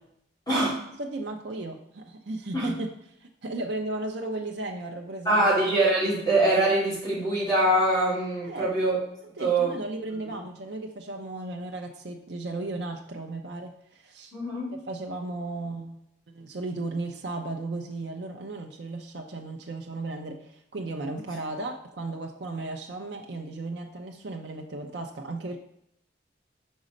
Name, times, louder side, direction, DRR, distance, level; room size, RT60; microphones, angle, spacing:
voice 1, 1.0-2.9 3.2-5.5 8.4-8.7 9.4-14.3 14.7-16.0 16.3-25.6, right 2 dB, 70° right, 2 dB, 0.6 m, -35 dB
voice 2, 5.2-9.0 9.4-9.7 14.3-14.8, right 1 dB, 20° left, -8 dB, 2.5 m, -23 dB
5.4 x 4.0 x 5.0 m, 0.75 s
head